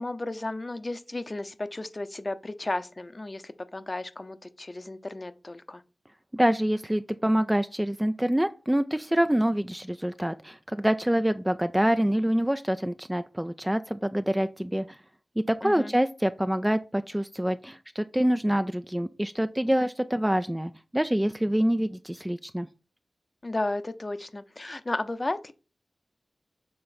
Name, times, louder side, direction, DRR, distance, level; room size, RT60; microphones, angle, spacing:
voice 1, 0.0-5.8 15.6-15.9 23.4-25.5, left 2 dB, 35° left, 0.7 m, -33 dB
voice 2, 6.3-15.0 15.5-22.7, equal, 10° right, 0.3 m, -26 dB
6.9 x 3.8 x 4.1 m
wide cardioid pair, 75°, 0 cm